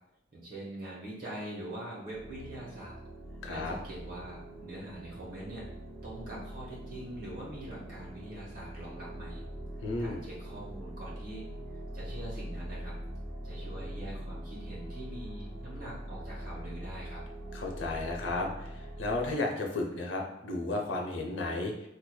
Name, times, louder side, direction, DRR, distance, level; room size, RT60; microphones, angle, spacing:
voice 1, 0.3-3.0 3.5-5.7 6.0-9.4 10.0-11.5 11.9-13.0 13.4-17.2, right 1 dB, 50° right, -6 dB, 1.1 m, -43 dB
sound 1, 2.1-19.3, right 1 dB, 5° left, 1.2 m, -43 dB
voice 2, 3.4-3.7 9.8-10.2 17.5-21.9, left 2 dB, 90° left, 1 dB, 0.7 m, -33 dB
4.6 x 2.5 x 2.3 m, 0.81 s
head